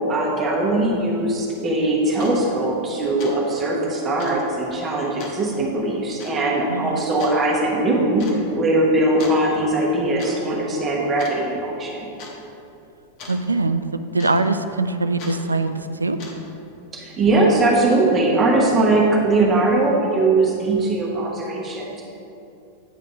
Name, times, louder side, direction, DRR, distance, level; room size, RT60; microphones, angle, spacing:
voice 1, 0.1-8.2 8.5-12.1 16.9-22.0, right 2 dB, 25° right, -3 dB, 1.1 m, -20 dB
sound 1, 2.2-2.4 2.8-2.9 3.2-3.4 3.7-3.8 4.2-4.4 5.2-5.4 6.2-6.4 7.2-7.4 8.2-8.4 9.2-9.4 10.0-10.4 10.6-10.9 11.2-11.7 12.2-12.4 13.2-13.4 14.2-14.6 15.2-15.4 16.0-16.6, left 3 dB, 45° left, 1.2 m, -38 dB
voice 2, 6.7-7.0 13.3-16.2, right 3 dB, 80° right, 10 dB, 0.3 m, -23 dB
9.0 x 4.1 x 5.0 m, 2.8 s
figure-of-eight pair, 90°, 0 cm